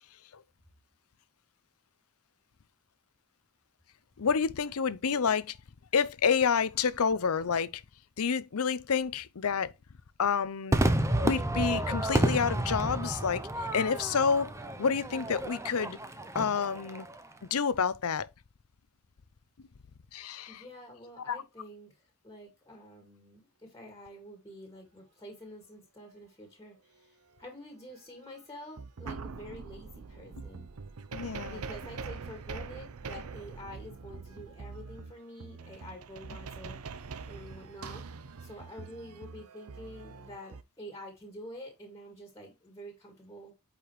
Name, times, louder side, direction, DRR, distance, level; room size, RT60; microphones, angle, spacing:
voice 1, 4.2-5.6 5.9-7.8 8.2-9.7 10.2-10.8 11.2-14.5 14.8-16.0 16.3-17.1 17.5-18.3 20.1-20.6 21.3-21.4 31.1-31.6, left 6 dB, 75° left, 0.6 m, -29 dB
Crowd / Fireworks, 10.7-17.3, right 1 dB, 15° right, 0.6 m, -30 dB
voice 2, 20.5-30.7 31.4-38.0 38.4-43.5, equal, 15° left, 2.1 m, -48 dB
sound 1, 28.3-28.4 28.8-40.6, right 4 dB, 75° right, 0.6 m, -43 dB
8.7 x 5.0 x 3.2 m
head